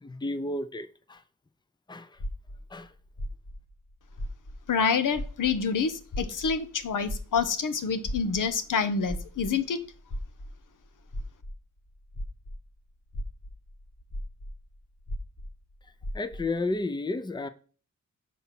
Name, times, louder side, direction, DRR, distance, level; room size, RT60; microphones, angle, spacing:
voice 1, 0.0-1.2 1.9-2.1 2.7-2.9 16.1-17.5, left 2 dB, 15° left, 0.6 m, -32 dB
sound 1, 2.2-4.8 5.1-12.7 13.1-16.6, equal, 50° left, 1.3 m, -38 dB
voice 2, 4.7-9.8, left 5 dB, 85° left, 0.8 m, -27 dB
6.0 x 4.2 x 5.9 m
cardioid pair, 60°, 31 cm